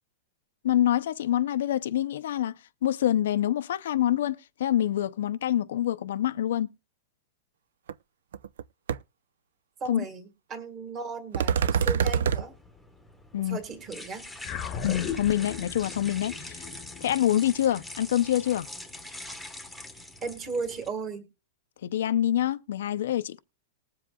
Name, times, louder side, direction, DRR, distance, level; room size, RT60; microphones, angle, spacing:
voice 1, 0.6-2.5 2.8-6.7 9.9-10.0 13.3-13.6 14.8-16.7 17.0-18.7 21.8-23.4, left 11 dB, 65° left, 0.6 m, -26 dB
sound 1, 7.9-8.0 8.3-8.6 8.9-9.0 11.3-12.4, right 7 dB, 75° right, 0.5 m, -24 dB
voice 2, 9.8-12.6 13.4-14.3 20.2-21.2, right 4 dB, 20° right, 1.7 m, -36 dB
sound 2, 12.3-20.9, left 1 dB, ahead, 1.2 m, -43 dB
sound 3, 14.4-19.1, left 8 dB, 25° left, 1.0 m, -38 dB
20.0 x 7.5 x 2.3 m
supercardioid pair, 175°, 0 cm